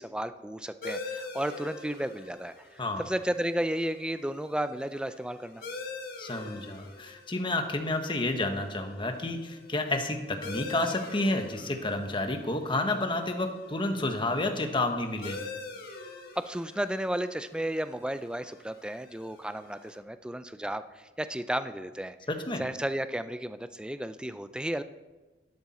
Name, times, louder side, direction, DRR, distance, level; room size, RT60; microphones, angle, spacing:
voice 1, 0.0-5.6 16.4-22.1 22.6-24.8, right 1 dB, 5° right, 12 dB, 0.4 m, -33 dB
sound 1, 0.8-20.0, left 3 dB, 60° left, 1.6 m, -45 dB
voice 2, 6.2-15.4 22.3-22.6, left 2 dB, 30° left, 5 dB, 1.2 m, -30 dB
12.0 x 11.5 x 4.3 m, 1.2 s
head